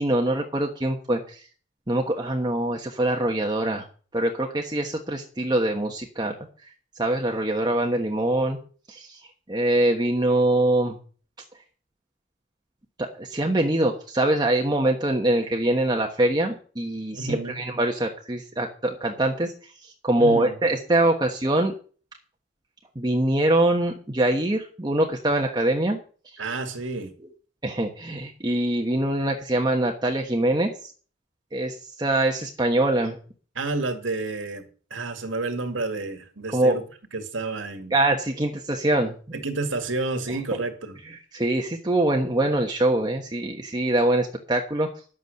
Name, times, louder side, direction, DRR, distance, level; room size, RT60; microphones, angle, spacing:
voice 1, 0.0-1.4 1.9-3.8 4.1-6.3 7.0-8.6 8.9-9.2 9.5-11.0 13.0-19.5 19.8-21.7 22.9-26.0 27.6-30.9 31.5-33.2 36.5-36.7 37.9-39.2 40.3-40.4 41.3-44.9, right 1 dB, 20° right, 1.2 m, -23 dB
voice 2, 17.1-17.6 20.2-20.5 26.4-27.1 33.6-34.7 34.9-36.8 37.1-37.9 39.3-41.0, right 3 dB, 75° right, 2.2 m, -30 dB
11.0 x 8.3 x 6.6 m
head